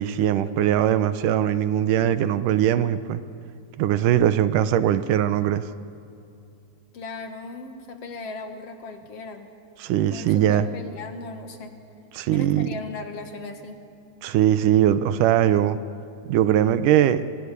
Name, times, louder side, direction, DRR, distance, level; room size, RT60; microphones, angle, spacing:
voice 1, 0.0-3.2 3.8-5.6 9.8-10.7 12.1-12.7 14.2-15.8 16.3-17.2, right 11 dB, 85° right, 12 dB, 2.5 m, -20 dB
voice 2, 6.9-9.5 10.1-11.8 12.3-13.8, left 3 dB, 55° left, 6 dB, 2.4 m, -37 dB
27.5 x 24.0 x 8.4 m, 2.5 s
omnidirectional pair, 3.6 m